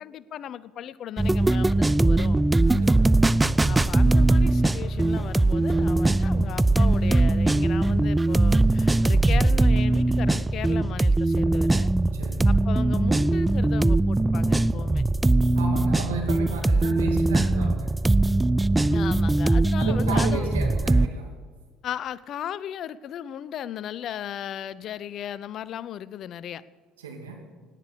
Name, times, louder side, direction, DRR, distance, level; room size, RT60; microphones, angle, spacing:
voice 1, 0.0-2.4 3.7-11.9 12.5-15.0 17.6-17.7 18.9-20.7 21.8-26.6, left 10 dB, 50° left, 19 dB, 0.5 m, -36 dB
sound 1, 1.2-21.1, right 2 dB, 10° right, 0.4 m, -21 dB
voice 2, 2.7-3.4 12.1-12.5 15.5-17.9 19.7-21.3 27.0-27.4, right 4 dB, 80° right, 2 dB, 2.4 m, -34 dB
17.5 x 10.0 x 6.7 m, 1.5 s
hypercardioid pair, 60°, 0 cm